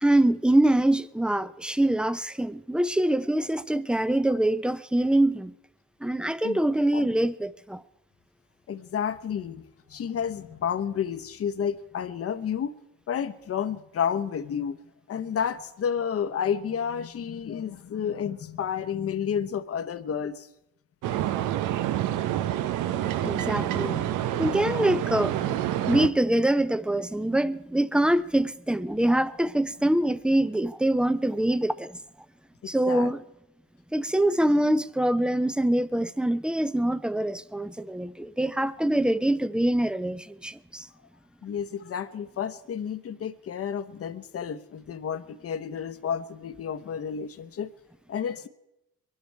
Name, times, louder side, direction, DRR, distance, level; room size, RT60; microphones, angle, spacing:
voice 1, 0.0-5.5 6.0-7.8 23.2-32.0 32.7-33.2 33.9-40.9, right 1 dB, 5° right, 0.5 m, -24 dB
voice 2, 8.7-9.6 9.9-12.7 13.1-14.8 15.1-20.5 32.6-33.1 41.4-47.7 48.1-48.5, left 8 dB, 50° left, 0.9 m, -31 dB
sound 1, 21.0-26.1, right 12 dB, 90° right, 0.7 m, -28 dB
22.5 x 12.0 x 4.6 m
cardioid pair, 90°, 30 cm